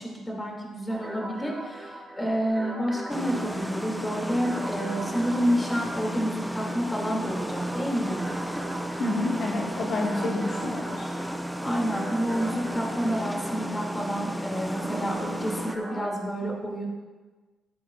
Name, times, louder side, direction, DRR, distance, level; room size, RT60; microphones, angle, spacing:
voice 1, 0.0-8.2 11.6-16.9, equal, 20° left, -1 dB, 2.4 m, -29 dB
jazzy chords (consolidated), 0.9-16.1, right 1 dB, 25° right, 2.3 m, -40 dB
sound 1, 3.1-15.8, equal, ahead, 0.6 m, -34 dB
voice 2, 9.0-11.0, left 2 dB, 55° left, -2 dB, 1.2 m, -28 dB
15.0 x 7.1 x 2.4 m, 1.3 s
cardioid pair, 90°, 0 cm